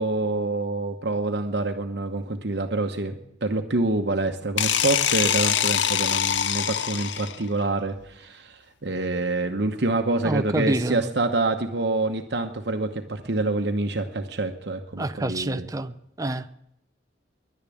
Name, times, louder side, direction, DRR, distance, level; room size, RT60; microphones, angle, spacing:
voice 1, 0.0-15.7, right 2 dB, 60° right, 5 dB, 1.0 m, -26 dB
sound 1, 4.6-7.5, left 9 dB, 75° left, 0.6 m, -24 dB
voice 2, 10.2-11.1 15.0-16.5, right 2 dB, 20° right, 10 dB, 0.5 m, -27 dB
11.0 x 10.5 x 9.9 m, 0.79 s
head